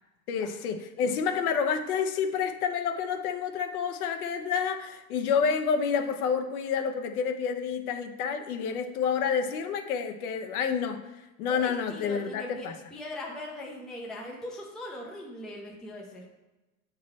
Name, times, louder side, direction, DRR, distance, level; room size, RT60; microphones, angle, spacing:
voice 1, 0.3-11.0 11.4-12.8, left 6 dB, 75° left, 6 dB, 1.0 m, -29 dB
voice 2, 11.5-16.2, left 1 dB, ahead, -2 dB, 0.4 m, -40 dB
7.5 x 4.0 x 4.2 m, 1.1 s
supercardioid pair, 140°, 44 cm